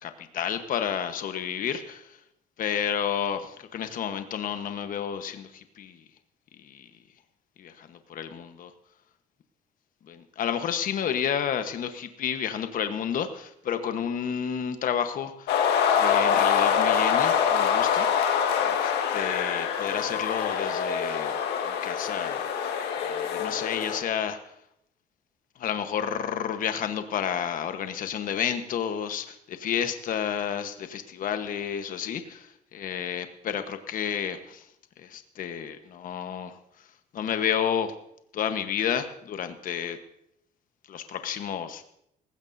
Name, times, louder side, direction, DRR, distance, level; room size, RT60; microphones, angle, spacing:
voice 1, 0.0-2.2 2.6-6.0 6.6-6.9 7.6-8.7 10.1-15.5 15.9-18.1 18.6-21.3 21.6-22.7 23.0-24.5 25.6-34.7 35.0-36.6 37.1-37.9 38.3-40.0 40.9-41.8, left 8 dB, 55° left, 8 dB, 1.2 m, -31 dB
sound 1, 15.5-24.0, left 7 dB, 75° left, 1.7 m, -25 dB
18.5 x 16.0 x 2.7 m, 0.77 s
cardioid pair, 110°, 17 cm